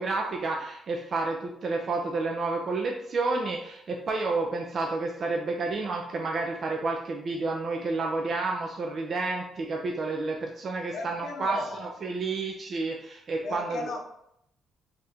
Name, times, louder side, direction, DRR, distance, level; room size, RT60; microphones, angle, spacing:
voice 1, 0.0-13.9, right 3 dB, 50° right, 1 dB, 0.4 m, -30 dB
voice 2, 10.9-11.9 13.4-14.0, left 3 dB, 60° left, 1 dB, 0.7 m, -35 dB
2.8 x 2.4 x 3.4 m, 0.75 s
cardioid pair, 90°, 0 cm